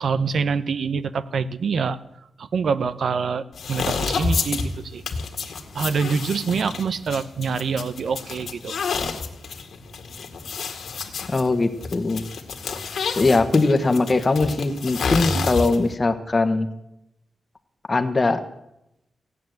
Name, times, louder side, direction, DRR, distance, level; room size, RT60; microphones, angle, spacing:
voice 1, 0.0-2.0 2.4-4.6 4.9-5.0 5.7-8.7 15.3-15.5, right 5 dB, 65° right, 15 dB, 0.8 m, -25 dB
sound 1, 3.5-16.0, left 5 dB, 70° left, 2.0 m, -29 dB
voice 2, 11.3-12.2 13.2-16.7 17.9-18.4, left 3 dB, 30° left, 9 dB, 1.2 m, -20 dB
16.0 x 9.5 x 7.9 m, 0.84 s
wide cardioid pair, 115°, 0 cm